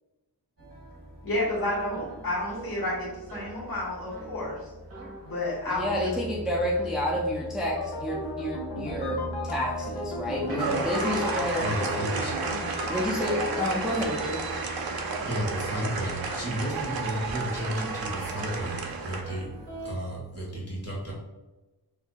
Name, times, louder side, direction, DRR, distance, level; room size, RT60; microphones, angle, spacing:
sound 1, 0.6-19.9, right 2 dB, 35° right, 1.4 m, -41 dB
voice 1, 1.2-4.6 5.2-6.1 19.5-19.6, left 1 dB, 60° left, -7 dB, 1.5 m, -31 dB
voice 2, 5.7-11.7 12.9-14.4, left 1 dB, ahead, -3 dB, 0.5 m, -29 dB
sound 2, 7.6-13.0, left 2 dB, 75° left, 0.8 m, -36 dB
sound 3, 10.6-19.2, right 4 dB, 60° right, 0.5 m, -32 dB
voice 3, 11.6-12.3 15.2-19.5 19.8-21.1, equal, 35° left, -4 dB, 1.4 m, -33 dB
4.4 x 2.8 x 2.3 m, 1.1 s
wide cardioid pair, 115°, 40 cm